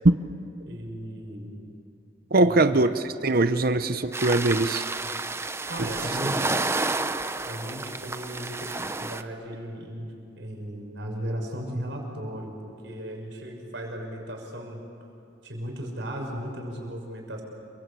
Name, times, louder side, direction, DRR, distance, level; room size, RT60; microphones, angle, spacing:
voice 1, 0.6-1.5 2.3-2.7 5.7-6.6 7.4-12.5 12.8-14.8 15.4-17.4, equal, 70° right, 1 dB, 6.5 m, -36 dB
voice 2, 2.3-4.8, right 2 dB, 50° right, 10 dB, 0.9 m, -22 dB
sound 1, 4.1-9.2, right 3 dB, 15° right, 0.7 m, -30 dB
30.0 x 23.5 x 8.5 m, 2.6 s
head